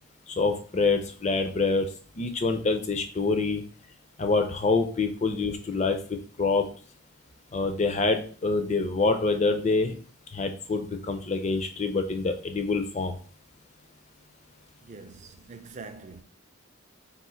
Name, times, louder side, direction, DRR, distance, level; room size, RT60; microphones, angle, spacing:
voice 1, 0.4-1.8 2.2-3.6 4.2-6.0 6.4-6.7 7.5-9.9 10.3-13.1, left 3 dB, 30° left, 0.4 m, -26 dB
voice 2, 14.8-16.2, right 4 dB, 30° right, 0.3 m, -44 dB
3.6 x 2.5 x 4.3 m
head